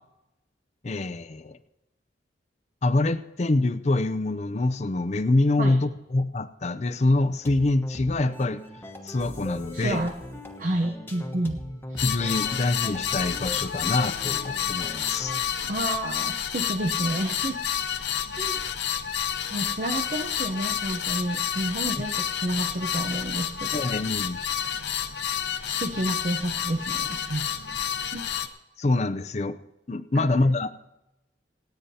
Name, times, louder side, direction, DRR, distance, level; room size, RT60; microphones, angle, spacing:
voice 1, 0.8-1.6 2.8-8.6 9.0-10.0 12.0-15.3 23.7-24.4 28.8-29.6 29.9-30.8, left 2 dB, 35° left, 12 dB, 0.5 m, -25 dB
sound 1, 7.4-15.6, left 1 dB, 10° left, 1.1 m, -39 dB
voice 2, 9.7-10.1 10.6-11.6 11.9-12.0 15.6-17.6 18.3-18.6 19.5-23.9 24.6-24.8 25.6-27.5 28.1-28.2 30.1-30.6, right 1 dB, 45° right, 4 dB, 0.8 m, -30 dB
sound 2, 12.0-28.5, left 9 dB, 65° left, 0.7 m, -29 dB
27.5 x 9.2 x 2.8 m, 0.94 s
head